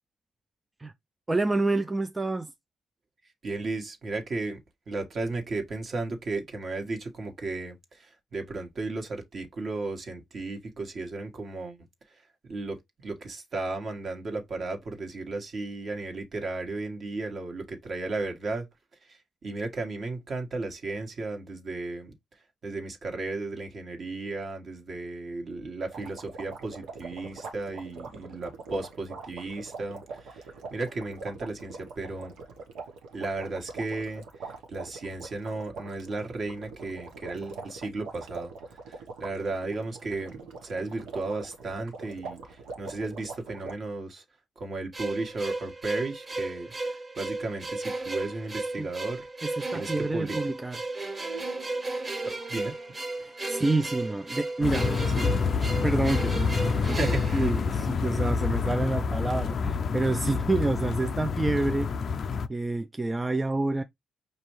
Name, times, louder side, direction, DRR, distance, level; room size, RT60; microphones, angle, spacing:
voice 1, 1.3-2.5 48.8-48.9 49.4-50.8 53.2-55.4 55.8-62.1 62.5-63.8, right 2 dB, 15° right, 0.3 m, -28 dB
voice 2, 3.4-4.6 4.9-11.8 12.1-12.2 12.4-18.7 19.1-22.1 22.6-32.3 33.1-38.5 38.9-44.2 44.6-49.3 49.7-50.4 52.2-52.7 56.8-57.5, right 3 dB, 50° right, 1.3 m, -35 dB
sound 1, 25.9-43.7, right 4 dB, 85° right, 0.9 m, -43 dB
sound 2, 44.9-58.2, right 2 dB, 35° right, 1.6 m, -34 dB
sound 3, 54.6-62.5, left 5 dB, 50° left, 0.4 m, -27 dB
5.4 x 2.6 x 3.0 m
cardioid pair, 90°, 0 cm